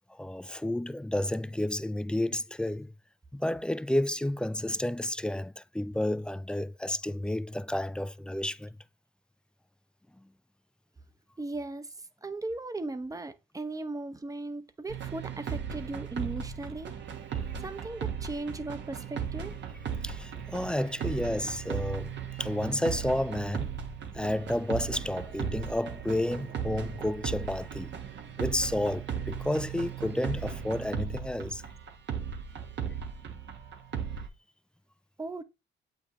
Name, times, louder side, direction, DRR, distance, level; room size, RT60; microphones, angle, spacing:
voice 1, 0.1-2.9 3.3-8.8 20.0-23.7 24.1-27.9 28.4-31.6, left 1 dB, 5° left, 0.3 m, -31 dB
voice 2, 11.4-11.9 12.2-16.9 17.6-19.5 35.2-35.4, right 2 dB, 15° right, 0.8 m, -37 dB
sound 1, 14.9-34.3, right 7 dB, 65° right, 1.3 m, -37 dB
8.2 x 5.3 x 3.0 m
cardioid pair, 90°, 20 cm